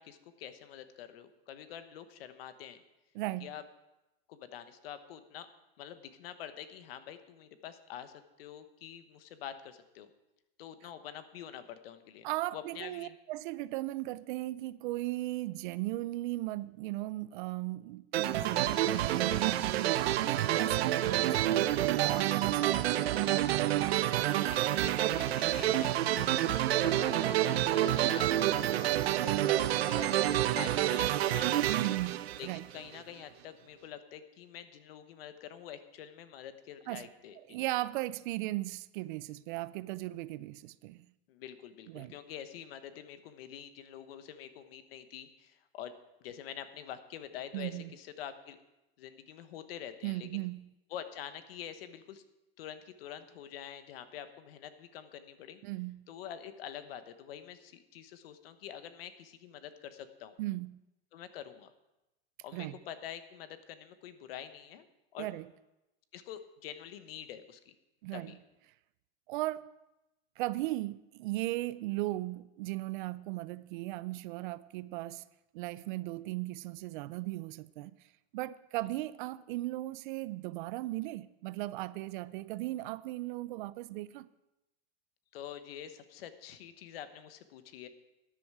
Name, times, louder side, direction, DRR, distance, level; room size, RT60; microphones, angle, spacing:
voice 1, 0.0-2.8 3.4-3.6 4.3-5.5 5.8-10.1 10.6-12.3 12.5-13.2 22.2-22.4 24.4-31.9 32.4-37.6 41.3-45.9 46.2-48.6 49.0-50.4 50.9-52.2 52.6-55.6 56.1-60.4 61.1-61.7 62.4-64.8 65.1-65.3 66.1-67.7 68.1-68.4 85.3-87.9, left 9 dB, 70° left, 1.2 m, -46 dB
voice 2, 3.1-3.5 12.2-23.7 27.5-27.6 31.7-32.7 36.9-37.1 37.5-41.1 41.9-42.1 47.5-47.9 50.0-50.7 55.6-56.0 60.4-60.8 62.5-62.8 65.2-65.5 68.0-68.3 69.3-69.7 70.4-75.3 75.5-78.0 78.3-84.3, right 18 dB, 55° right, 0.5 m, -37 dB
sound 1, 18.1-33.0, right 13 dB, 90° right, 0.7 m, -28 dB
13.0 x 10.0 x 4.8 m
supercardioid pair, 150°, 31 cm